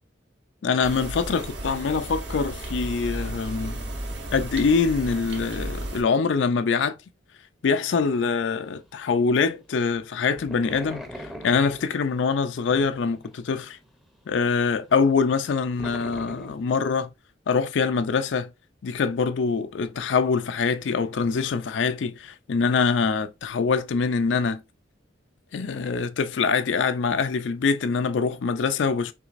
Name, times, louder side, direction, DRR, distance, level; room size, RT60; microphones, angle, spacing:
voice 1, 0.6-3.8 4.3-7.0 7.6-13.8 14.3-17.1 17.5-18.5 18.8-24.6 25.5-29.1, left 5 dB, 80° left, 0.4 m, -24 dB
sound 1, 0.8-6.0, right 1 dB, 70° right, 1.1 m, -34 dB
sound 2, 8.2-8.5 8.8-12.2 12.6-13.9 14.1-16.9, equal, ahead, 0.6 m, -41 dB
6.0 x 3.2 x 2.5 m
head